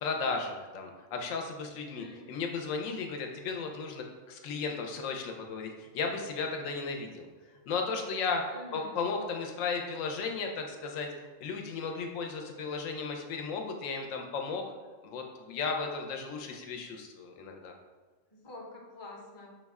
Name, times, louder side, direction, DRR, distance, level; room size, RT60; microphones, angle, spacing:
voice 1, 0.0-7.3 7.7-8.4 8.7-11.1 11.4-14.6 15.0-17.7, left 4 dB, 85° left, 3 dB, 1.0 m, -35 dB
voice 2, 1.9-2.2 8.5-9.0 18.3-19.6, left 1 dB, 30° left, -2 dB, 0.5 m, -47 dB
5.3 x 2.1 x 3.4 m, 1.4 s
omnidirectional pair, 1.3 m